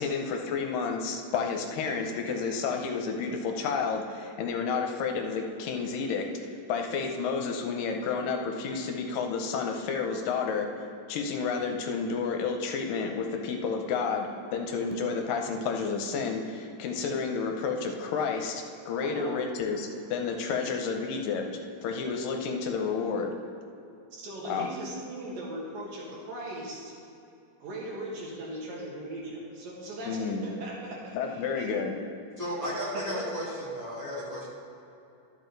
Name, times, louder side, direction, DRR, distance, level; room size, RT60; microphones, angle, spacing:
voice 1, 0.0-6.3 6.7-21.4 21.8-23.3 24.5-24.7 30.1-30.5 31.1-31.9, left 5 dB, 75° left, 3 dB, 2.3 m, -30 dB
voice 2, 19.0-19.4 24.1-26.8 27.6-31.7 32.6-33.2, right 1 dB, 75° right, -4 dB, 3.4 m, -39 dB
voice 3, 32.4-34.5, equal, 5° left, -10 dB, 1.7 m, -34 dB
12.0 x 7.4 x 3.9 m, 2.8 s
omnidirectional pair, 4.1 m